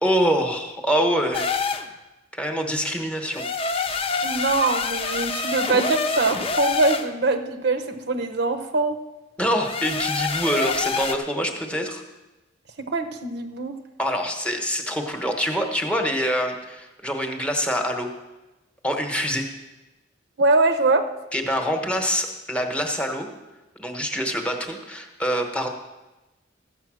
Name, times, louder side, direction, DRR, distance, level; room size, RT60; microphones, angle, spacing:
voice 1, 0.0-1.5 2.3-3.4 9.4-12.0 14.0-18.1 18.8-19.4 21.3-23.3 23.8-25.7, equal, 5° left, 3 dB, 1.2 m, -25 dB
sound 1, 1.3-1.9 3.3-7.1 9.6-11.1, left 4 dB, 30° left, 0.8 m, -26 dB
voice 2, 4.2-9.0 12.8-13.8 20.4-21.1, right 3 dB, 60° right, 5 dB, 1.0 m, -23 dB
13.5 x 8.3 x 6.3 m, 1.1 s
head